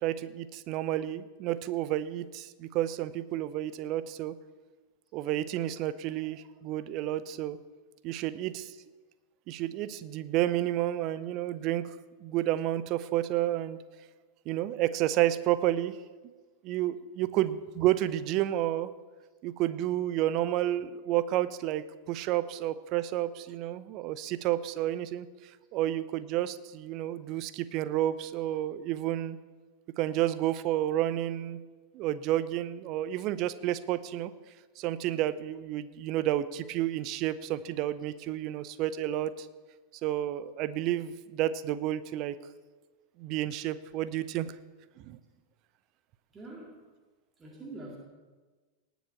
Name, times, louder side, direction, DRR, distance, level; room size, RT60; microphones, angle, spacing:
voice 1, 0.0-4.4 5.1-7.6 8.0-8.7 9.5-11.9 12.2-13.8 14.5-16.0 16.6-18.9 19.4-29.4 30.0-31.6 31.9-34.3 34.8-39.5 40.0-42.4 43.2-44.5 45.1-45.2, right 13 dB, 40° right, 15 dB, 0.7 m, -30 dB
voice 2, 46.3-46.9 47.4-48.0, right 2 dB, 20° right, -1 dB, 2.2 m, -44 dB
19.0 x 7.2 x 5.8 m, 1.3 s
figure-of-eight pair, 90°, 0 cm